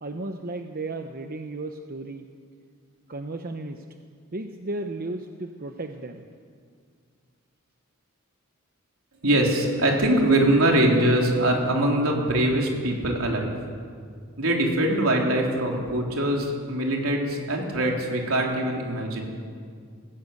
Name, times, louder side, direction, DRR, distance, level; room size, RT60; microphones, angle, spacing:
voice 1, 0.0-2.3 3.1-3.8 4.3-6.3, right 2 dB, 45° right, 5 dB, 0.9 m, -34 dB
voice 2, 9.2-13.5 14.4-19.3, right 1 dB, 75° right, 0 dB, 3.7 m, -23 dB
20.0 x 16.0 x 8.4 m, 2.1 s
head